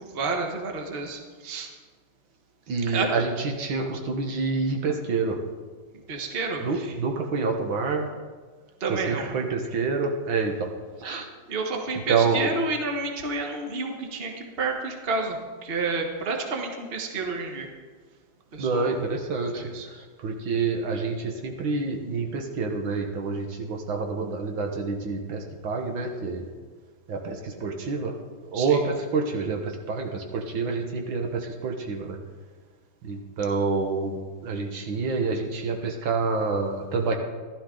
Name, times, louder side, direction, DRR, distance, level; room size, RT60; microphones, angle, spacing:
voice 1, 0.0-1.7 2.9-3.1 6.1-7.0 8.8-9.3 11.5-17.7 18.5-19.0 19.5-19.9 28.5-28.8, right 3 dB, 30° right, 2 dB, 1.4 m, -30 dB
voice 2, 2.7-5.4 6.6-8.1 8.9-10.7 11.0-11.3 12.1-12.5 18.6-26.5 27.1-28.1 28.5-32.2 33.0-34.2 34.4-37.2, right 4 dB, 70° right, 3 dB, 1.9 m, -27 dB
15.0 x 12.0 x 3.8 m, 1.5 s
omnidirectional pair, 2.2 m